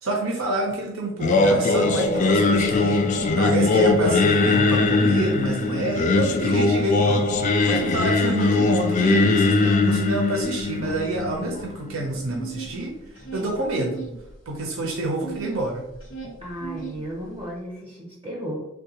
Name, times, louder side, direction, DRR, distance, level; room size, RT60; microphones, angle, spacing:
voice 1, 0.0-3.0 3.4-7.3 7.7-12.9 13.3-14.0 14.5-15.9, right 1 dB, 90° right, 0 dB, 0.6 m, -27 dB
Singing, 1.2-12.3, left 3 dB, 40° left, 0.3 m, -21 dB
sound 1, 3.1-4.5 4.8-6.6 7.0-15.6 15.9-17.5, right 5 dB, 90° left, 0.9 m, -39 dB
voice 2, 16.4-18.7, equal, 25° right, -4 dB, 0.7 m, -34 dB
3.6 x 2.3 x 2.8 m, 0.85 s
head